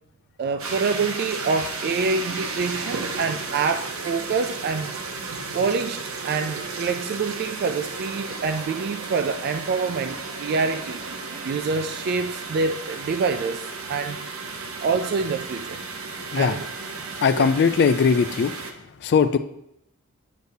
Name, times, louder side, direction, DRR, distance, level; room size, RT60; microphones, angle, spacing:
voice 1, 0.4-4.9 5.5-11.0 11.4-14.2 14.8-15.8 16.4-16.6 17.4-17.5, right 4 dB, 50° right, 8 dB, 0.3 m, -26 dB
sound 1, 0.6-18.7, right 4 dB, 80° right, 0.8 m, -34 dB
voice 2, 17.2-18.5 19.0-19.4, left 6 dB, 50° left, 9 dB, 0.3 m, -19 dB
8.1 x 7.9 x 2.7 m, 0.80 s
head